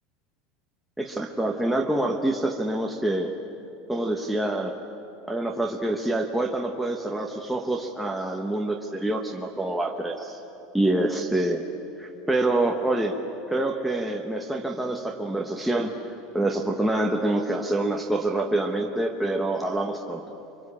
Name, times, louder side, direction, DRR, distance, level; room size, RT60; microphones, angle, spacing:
voice 1, 1.0-3.3 3.9-4.8 5.3-10.4 10.7-11.7 12.0-13.2 13.5-15.9 16.3-20.4, right 1 dB, ahead, 0 dB, 1.2 m, -26 dB
25.5 x 24.0 x 8.6 m, 2.9 s
supercardioid pair, 155°, 0 cm